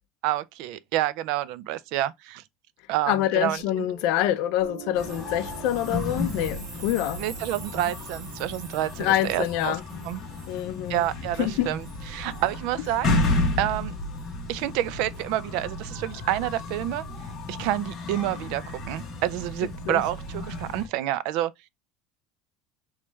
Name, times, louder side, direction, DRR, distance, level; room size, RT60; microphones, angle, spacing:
voice 1, 0.2-2.4 2.9-3.9 7.2-9.8 10.0-10.2 10.9-11.8 12.1-13.1 13.6-13.9 14.5-17.0 17.5-21.5, right 13 dB, 60° right, 0.3 m, -28 dB
voice 2, 3.1-7.2 9.0-9.8 10.5-11.0 11.4-11.7 19.9-20.0, left 12 dB, 55° left, 0.4 m, -26 dB
Piano, 3.6-10.6, right 7 dB, 80° right, 1.5 m, -47 dB
sound 1, 4.9-20.8, left 2 dB, 25° left, 1.1 m, -32 dB
sound 2, 5.0-13.6 14.2-14.3 15.1-15.2, right 4 dB, 40° right, 1.2 m, -47 dB
3.1 x 3.0 x 3.3 m
cardioid pair, 180°, 0 cm